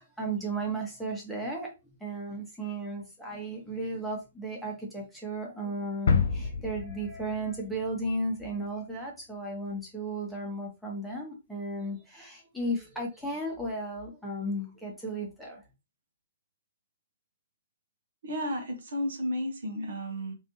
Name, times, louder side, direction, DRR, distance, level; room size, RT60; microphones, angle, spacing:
voice 1, 0.0-1.7 2.0-15.6, right 1 dB, ahead, 1.1 m, -35 dB
sound 1, 6.1-8.0 8.4-8.5, left 5 dB, 55° left, 0.5 m, -29 dB
voice 2, 18.2-20.3, equal, 55° right, 0.9 m, -33 dB
3.2 x 2.7 x 2.9 m
figure-of-eight pair, 120°, 0 cm